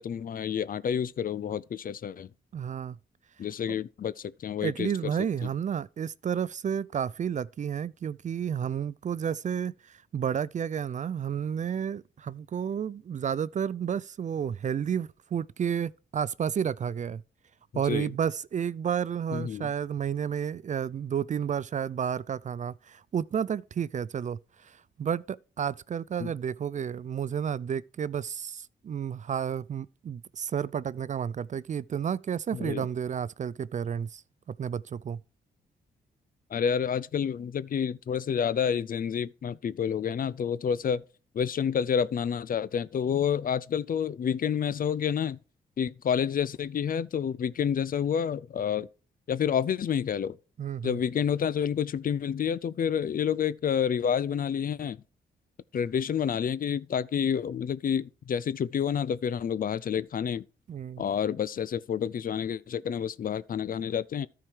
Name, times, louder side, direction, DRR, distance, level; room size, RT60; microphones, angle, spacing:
voice 1, 0.0-2.3 3.4-4.9 5.4-5.5 17.9-18.1 19.3-19.7 26.2-26.3 32.5-32.9 36.5-41.0 41.3-45.4 45.8-48.9 49.3-50.4 50.8-55.0 55.7-60.4 61.0-64.3, left 8 dB, 50° left, 0.5 m, -29 dB
voice 2, 2.5-3.0 4.6-17.2 17.7-34.2 34.5-35.2 50.6-51.0 60.7-61.0, right 8 dB, 45° right, 0.4 m, -31 dB
13.0 x 4.7 x 4.6 m
supercardioid pair, 60°, 18 cm